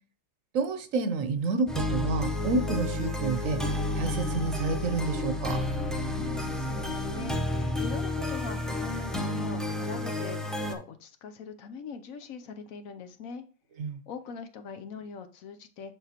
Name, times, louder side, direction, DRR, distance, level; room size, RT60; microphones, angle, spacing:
voice 1, 0.5-3.6 3.9-5.6 13.8-14.0, right 4 dB, 60° right, 9 dB, 1.1 m, -29 dB
sound 1, 1.7-10.7, left 1 dB, ahead, 0.3 m, -31 dB
voice 2, 6.2-13.4 14.1-15.9, left 5 dB, 65° left, 9 dB, 1.0 m, -41 dB
10.5 x 3.7 x 2.9 m, 0.40 s
omnidirectional pair, 1.6 m